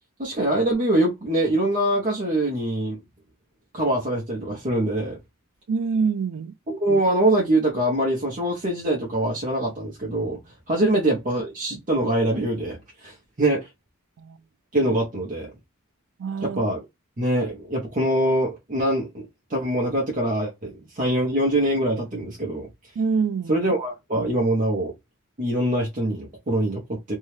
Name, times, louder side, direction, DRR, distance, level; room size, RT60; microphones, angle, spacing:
voice 1, 0.2-3.0 3.7-5.2 6.7-10.4 10.7-13.7 14.7-15.5 16.4-16.8 17.2-22.7 23.5-24.9 25.4-27.2, right 1 dB, 35° right, 0.7 m, -24 dB
voice 2, 5.7-6.5 14.2-14.4 16.2-16.6 23.0-23.6, right 5 dB, 65° right, 0.3 m, -25 dB
2.7 x 2.2 x 3.1 m
head